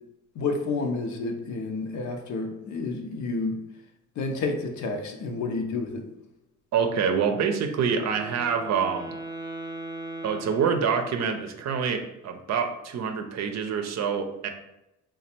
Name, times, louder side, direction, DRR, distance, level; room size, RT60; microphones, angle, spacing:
voice 1, 0.4-3.6 4.2-6.0, left 3 dB, 70° left, 4 dB, 0.7 m, -30 dB
voice 2, 6.7-9.1 10.2-14.5, right 6 dB, 60° right, 6 dB, 0.6 m, -26 dB
Wind instrument woodwind instrument, 7.8-11.4, right 2 dB, 15° right, 0.4 m, -39 dB
3.2 x 2.3 x 4.3 m, 0.90 s
cardioid pair, 90°, 30 cm